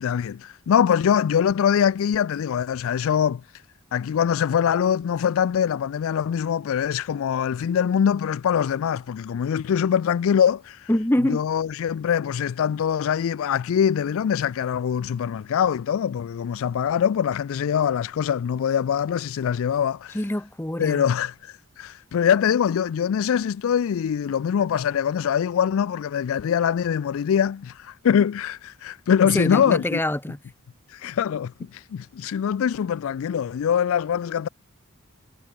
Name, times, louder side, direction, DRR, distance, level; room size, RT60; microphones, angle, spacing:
voice 1, 0.0-3.4 3.9-10.9 11.2-20.2 20.8-30.0 30.9-34.5, left 8 dB, 65° left, 0.3 m, -23 dB
voice 2, 10.9-11.4 20.1-21.1 29.3-30.4, left 1 dB, 10° left, 1.0 m, -24 dB
head